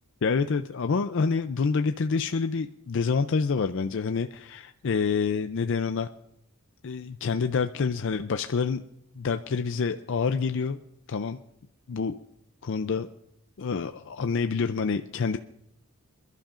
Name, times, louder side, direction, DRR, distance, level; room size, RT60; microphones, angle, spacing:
voice 1, 0.2-6.1 6.8-8.8 9.2-10.8 11.1-11.4 11.9-12.2 12.6-13.1 13.6-15.4, left 5 dB, 55° left, 8 dB, 0.4 m, -27 dB
27.5 x 11.5 x 2.5 m, 0.80 s
head